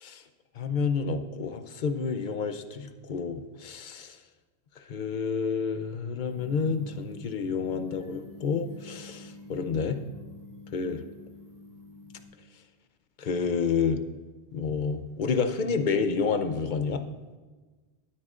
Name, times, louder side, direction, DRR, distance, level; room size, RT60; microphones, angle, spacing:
voice 1, 0.6-4.2 4.9-10.0 10.7-11.0 13.2-14.0 14.5-17.0, left 5 dB, 50° left, 9 dB, 0.7 m, -29 dB
sound 1, 6.3-12.2, left 1 dB, 55° right, 1.8 m, -47 dB
17.5 x 8.5 x 2.5 m, 1.3 s
omnidirectional pair, 1.1 m